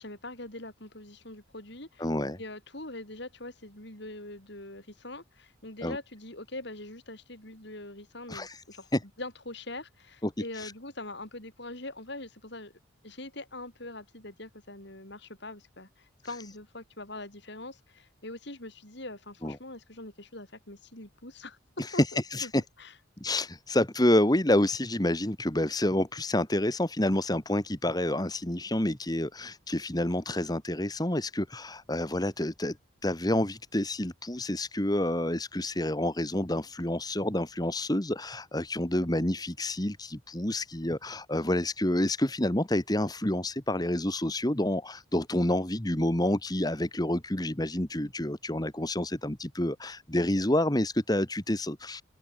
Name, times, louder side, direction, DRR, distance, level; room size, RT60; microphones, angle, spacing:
voice 1, 0.0-2.1 2.4-8.9 9.2-12.7 13.0-21.6 21.9-22.5 22.8-22.9, left 2 dB, 55° left, 5.6 m, -43 dB
voice 2, 2.0-2.4 5.8-6.0 8.3-8.6 8.9-9.0 10.2-10.7 19.4-19.5 22.0-22.1 22.3-22.6 23.2-32.8 33.0-52.0, left 1 dB, 20° left, 1.7 m, -28 dB
open air
head